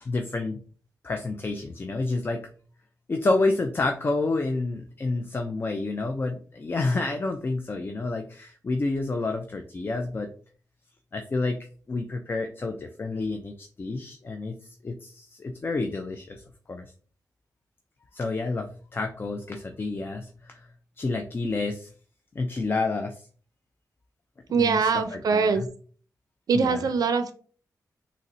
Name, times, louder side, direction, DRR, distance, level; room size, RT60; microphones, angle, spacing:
voice 1, 0.0-0.6 1.0-2.4 3.1-10.3 11.1-11.6 11.9-14.6 14.8-16.4 16.7-16.8 18.1-20.6 21.0-21.9 22.4-23.2 24.6-25.7 26.5-26.9, left 3 dB, 35° left, 5 dB, 0.3 m, -29 dB
voice 2, 24.5-25.6 26.5-27.3, right 5 dB, 75° right, 10 dB, 0.4 m, -23 dB
3.8 x 2.0 x 2.5 m, 0.44 s
cardioid pair, 75°, 7 cm